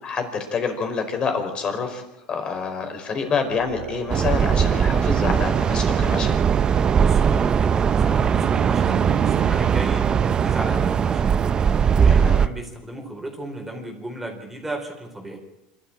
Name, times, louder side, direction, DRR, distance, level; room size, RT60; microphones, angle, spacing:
voice 1, 0.0-2.0 2.3-6.3 12.2-12.4, left 5 dB, 35° left, 5 dB, 4.9 m, -27 dB
sound 1, 3.5-5.0 5.4-5.5 5.7-7.3 7.9-11.0, right 13 dB, 55° right, 0.9 m, -32 dB
sound 2, 4.1-12.5, right 7 dB, 30° right, 0.8 m, -20 dB
voice 2, 6.9-11.2 11.9-15.4, right 1 dB, 10° right, 2 dB, 4.4 m, -34 dB
26.0 x 13.0 x 8.7 m, 0.97 s
supercardioid pair, 110°, 3 cm